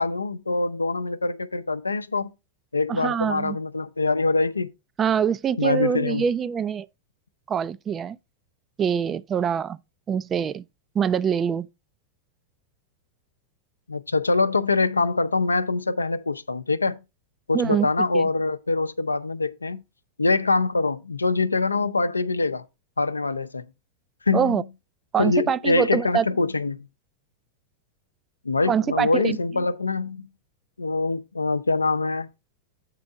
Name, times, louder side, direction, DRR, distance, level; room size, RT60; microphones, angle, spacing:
voice 1, 0.0-2.3 2.7-4.7 5.6-6.2 13.9-17.0 17.5-19.8 20.2-22.6 23.0-23.6 24.3-24.6 25.2-26.9 28.4-30.3 30.8-32.3, left 3 dB, 80° left, 0.5 m, -24 dB
voice 2, 2.9-3.6 5.0-6.9 7.5-8.2 8.8-9.8 10.1-10.6 10.9-11.7 17.5-17.9 18.1-18.3 24.3-24.6 25.1-26.3 28.7-29.4, right 7 dB, 25° right, 0.3 m, -24 dB
8.2 x 4.3 x 5.0 m
figure-of-eight pair, 90°, 0 cm